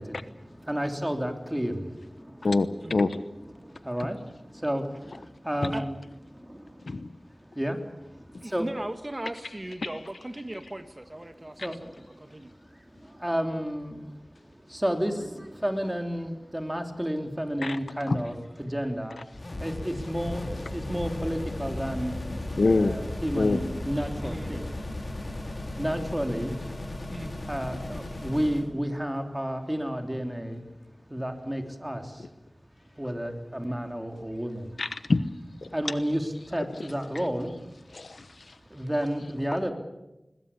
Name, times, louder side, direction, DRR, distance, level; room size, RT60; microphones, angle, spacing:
voice 1, 0.0-2.5 3.5-6.0 6.3-7.1 7.4-8.7 11.4-12.4 12.7-19.2 19.6-22.2 22.7-24.7 25.7-26.7 27.5-30.6 31.1-32.3 33.0-34.8 35.7-37.5 38.7-39.7, equal, 15° right, 5 dB, 3.4 m, -32 dB
voice 2, 2.4-3.2 5.6-5.7 6.8-7.1 11.6-11.7 17.6-17.8 18.1-18.2 22.6-23.0 23.3-23.6 34.8-35.2 35.6-35.7 37.9-38.5, left 3 dB, 90° left, 13 dB, 1.0 m, -25 dB
voice 3, 8.4-12.5 24.2-24.5 27.1-27.3, right 1 dB, 35° right, 9 dB, 1.7 m, -38 dB
sound 1, 19.3-28.7, left 1 dB, 55° left, 3.9 m, -36 dB
21.5 x 21.0 x 8.6 m, 1.0 s
wide cardioid pair, 50°, 0 cm